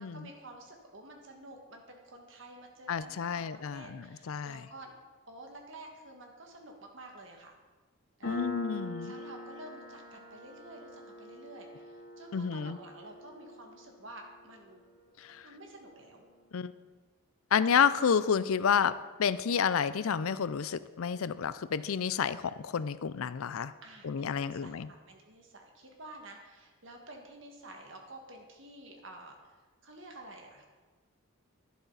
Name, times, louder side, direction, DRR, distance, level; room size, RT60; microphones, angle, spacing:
voice 1, 0.0-4.9 5.3-7.5 8.2-8.4 9.0-14.8 15.4-16.3 23.8-30.7, right 1 dB, 60° right, 2 dB, 1.7 m, -50 dB
voice 2, 2.9-4.6 8.3-9.1 12.3-12.8 15.2-15.4 16.5-16.7 17.5-23.7 24.0-24.9, left 7 dB, 75° left, 15 dB, 0.4 m, -30 dB
Piano, 8.2-15.4, left 1 dB, 55° left, 3.0 m, -44 dB
11.5 x 11.0 x 4.0 m, 1.3 s
head